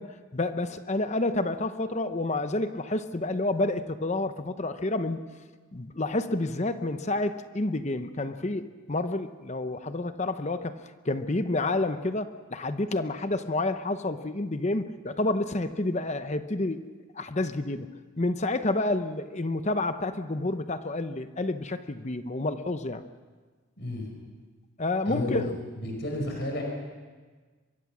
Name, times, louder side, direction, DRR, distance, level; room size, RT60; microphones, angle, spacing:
voice 1, 0.0-5.2 5.7-10.8 11.0-16.9 17.1-17.9 18.2-23.0 24.8-25.5, left 2 dB, 30° left, 10 dB, 0.8 m, -29 dB
voice 2, 23.8-24.1 25.1-25.5 25.8-26.6, left 1 dB, 50° left, 1 dB, 5.2 m, -31 dB
24.5 x 22.5 x 6.2 m, 1.4 s
head